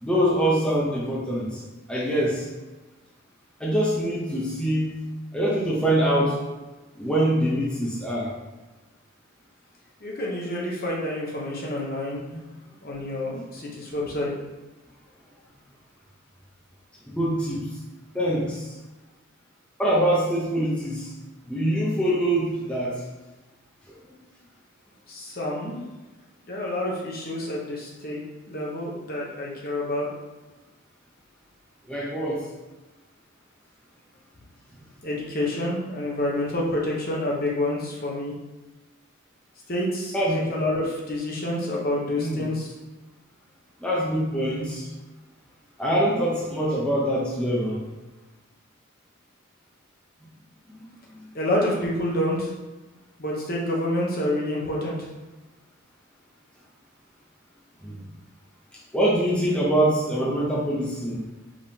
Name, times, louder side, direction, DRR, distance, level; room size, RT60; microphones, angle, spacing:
voice 1, 0.0-1.6 1.9-2.5 3.6-5.0 5.3-6.4 7.0-8.3 12.3-12.4 13.3-13.6 17.1-17.7 18.1-18.8 19.8-21.1 21.5-23.0 31.9-32.5 40.1-40.5 42.2-42.5 43.8-44.9 45.8-47.8 50.7-51.3 57.8-58.0 58.9-61.2, right 1 dB, 5° left, -7 dB, 0.7 m, -24 dB
voice 2, 10.0-12.2 12.8-14.3 25.1-25.7 26.5-28.2 28.5-30.1 35.0-38.3 39.7-42.7 51.3-52.5 53.2-55.0, left 1 dB, 45° left, -3 dB, 0.9 m, -28 dB
5.0 x 3.6 x 2.8 m, 1.1 s
head